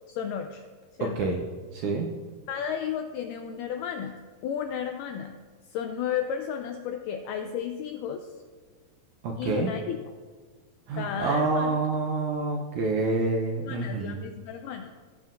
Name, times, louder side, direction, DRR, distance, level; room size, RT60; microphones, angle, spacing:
voice 1, 0.1-0.6 1.0-1.3 2.5-5.4 5.7-8.3 9.4-10.0 11.0-11.7 12.8-12.9 13.6-14.9, left 8 dB, 85° left, 6 dB, 1.8 m, -33 dB
voice 2, 1.7-2.1 9.2-9.7 10.9-14.2, right 3 dB, 75° right, 1 dB, 1.8 m, -27 dB
18.0 x 7.6 x 2.5 m, 1.5 s
omnidirectional pair, 4.2 m